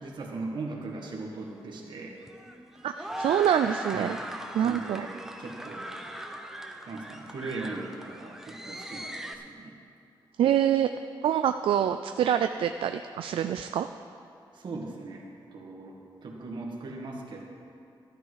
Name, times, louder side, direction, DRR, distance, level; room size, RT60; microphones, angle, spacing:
voice 1, 0.0-2.2 3.9-4.2 4.5-5.1 5.4-5.9 6.9-9.8 14.5-15.2 15.5-17.4, right 3 dB, 60° right, -1 dB, 2.0 m, -39 dB
sound 1, 1.4-9.3, right 1 dB, 5° right, 0.8 m, -40 dB
voice 2, 2.8-4.2 4.5-5.1 10.4-10.9 11.2-13.9, right 10 dB, 85° right, 8 dB, 0.4 m, -25 dB
13.0 x 12.0 x 4.9 m, 2.6 s
wide cardioid pair, 125°, 9 cm